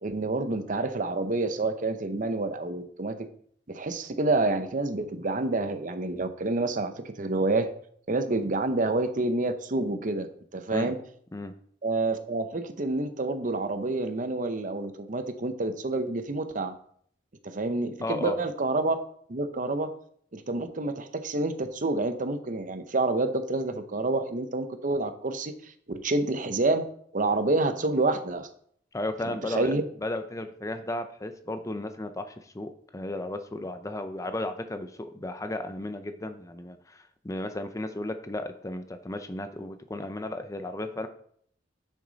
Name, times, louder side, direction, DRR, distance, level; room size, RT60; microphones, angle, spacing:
voice 1, 0.0-3.3 3.7-6.9 7.2-7.7 8.1-10.3 10.5-11.0 11.8-16.7 17.4-19.0 19.3-19.9 20.3-26.9 27.1-28.5 29.3-29.8, right 2 dB, 45° right, 9 dB, 0.8 m, -28 dB
voice 2, 18.0-18.5 28.9-29.7 30.0-41.1, left 1 dB, 20° left, 8 dB, 0.6 m, -34 dB
10.0 x 6.3 x 4.0 m, 0.62 s
head